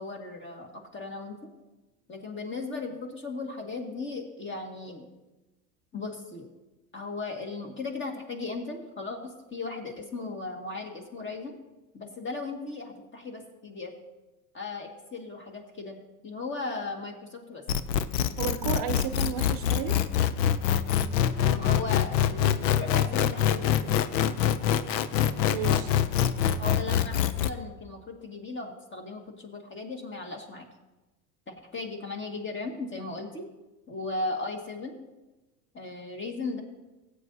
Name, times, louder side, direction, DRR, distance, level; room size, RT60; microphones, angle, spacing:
voice 1, 0.0-1.5 2.1-5.1 5.9-6.5 6.9-11.5 11.9-13.9 14.5-16.0 16.2-17.6 21.3-24.0 26.6-30.7 31.5-33.5 33.9-34.9 35.7-36.6, left 3 dB, 25° left, 3 dB, 1.9 m, -37 dB
sound 1, 17.7-27.5, left 9 dB, 80° left, 0.7 m, -25 dB
voice 2, 18.4-20.0 25.5-25.9, right 8 dB, 45° right, 9 dB, 0.7 m, -33 dB
16.5 x 8.3 x 2.8 m, 1.1 s
hypercardioid pair, 90°, 50 cm